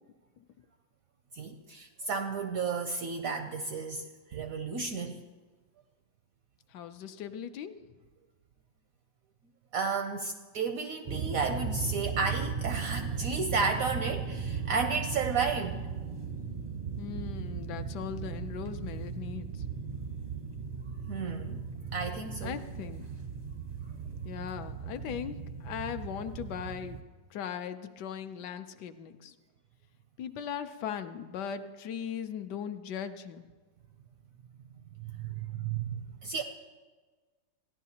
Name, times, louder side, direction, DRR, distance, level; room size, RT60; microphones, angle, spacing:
voice 1, 1.3-5.2 9.7-15.8 21.1-21.6 21.9-22.6 35.0-36.4, right 4 dB, 70° right, 6 dB, 0.8 m, -33 dB
voice 2, 6.7-7.7 17.0-19.6 22.4-23.1 24.2-27.0 27.3-29.4 30.2-33.4, left 8 dB, 75° left, 9 dB, 1.1 m, -39 dB
sound 1, 11.1-27.0, right 6 dB, 50° right, 0.5 m, -37 dB
15.5 x 11.0 x 2.8 m, 1.4 s
omnidirectional pair, 1.9 m